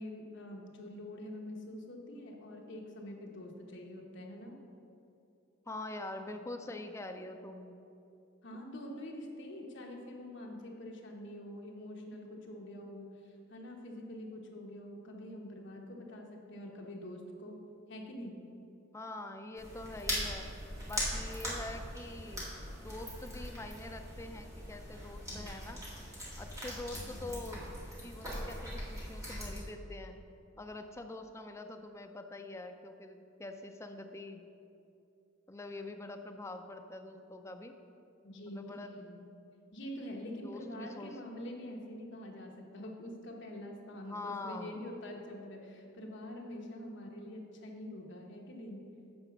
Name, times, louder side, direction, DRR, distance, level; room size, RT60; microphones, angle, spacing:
voice 1, 0.0-4.6 8.4-17.6 17.9-18.4 38.2-39.2 39.7-48.8, left 1 dB, 60° left, 0 dB, 1.1 m, -45 dB
voice 2, 5.7-7.7 18.9-20.5 20.9-22.5 22.8-25.8 26.4-30.2 30.6-34.5 35.5-37.7 38.5-39.1 40.4-41.2 43.9-44.9, left 2 dB, 15° left, 5 dB, 0.4 m, -45 dB
sound 1, 19.6-29.6, equal, 15° right, 2.0 m, -40 dB
7.8 x 5.0 x 5.8 m, 2.6 s
head